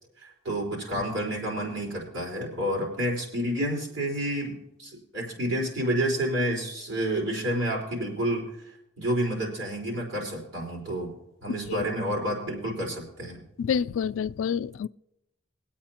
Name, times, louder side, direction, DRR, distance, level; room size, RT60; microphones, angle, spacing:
voice 1, 0.2-8.5 9.0-11.1 11.4-13.4, right 1 dB, 75° right, 4.3 m, -29 dB
voice 2, 13.6-14.9, left 7 dB, 85° left, 0.3 m, -28 dB
22.0 x 8.6 x 2.9 m
head